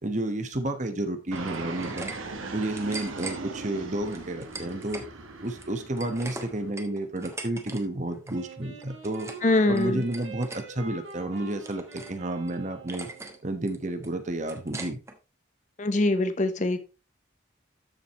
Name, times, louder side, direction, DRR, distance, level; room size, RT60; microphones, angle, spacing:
voice 1, 0.0-2.1 2.5-5.0 5.4-9.3 9.7-13.1 13.4-15.0, right 1 dB, 35° right, 8 dB, 1.0 m, -31 dB
sound 1, 1.3-2.2 2.5-3.4 4.1-5.1 5.4-7.8 8.1-8.4 8.8-9.5 9.8-10.6 11.1-12.2 12.5-12.6 12.9-13.4 13.7-15.2, right 2 dB, 15° right, 1.0 m, -41 dB
Fixed-wing aircraft airplane, 1.3-6.7, right 3 dB, 90° right, 1.5 m, -39 dB
Wind instrument woodwind instrument, 8.3-13.4, right 2 dB, 70° right, 3.1 m, -44 dB
voice 2, 9.4-10.0 15.8-16.8, left 2 dB, 40° left, 10 dB, 0.8 m, -23 dB
12.5 x 4.9 x 3.0 m, 0.29 s
head